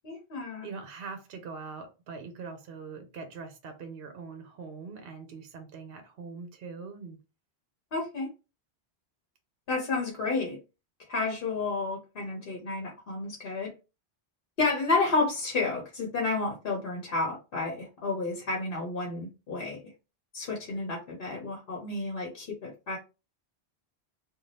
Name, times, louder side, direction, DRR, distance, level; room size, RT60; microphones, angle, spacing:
voice 1, 0.0-0.7 7.9-8.3 9.7-10.6 11.1-13.7 14.6-19.8 20.3-23.0, left 3 dB, 60° left, 0.9 m, -31 dB
voice 2, 0.6-7.2, right 5 dB, 65° right, 0.8 m, -42 dB
2.6 x 2.3 x 3.2 m
omnidirectional pair, 1.1 m